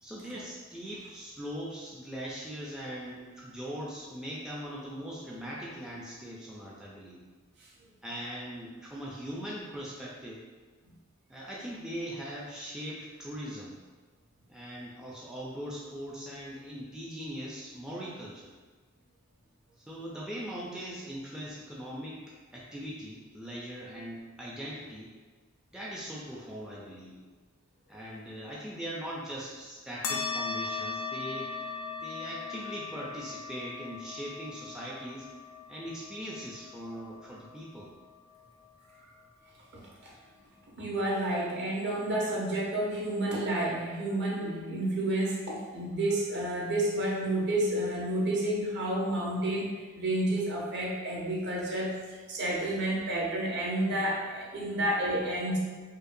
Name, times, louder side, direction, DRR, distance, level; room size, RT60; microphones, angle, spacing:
voice 1, 0.0-7.2 8.0-10.4 11.3-13.8 14.5-18.5 19.8-25.1 25.7-27.2 27.9-31.5 32.0-35.3 35.7-37.9, equal, 5° right, -6 dB, 0.4 m, -40 dB
sound 1, 30.0-39.0, left 5 dB, 80° left, 0.4 m, -39 dB
voice 2, 39.7-40.1 40.8-49.7 50.0-55.6, right 1 dB, 55° right, -4 dB, 0.9 m, -30 dB
5.2 x 2.2 x 2.6 m, 1.4 s
head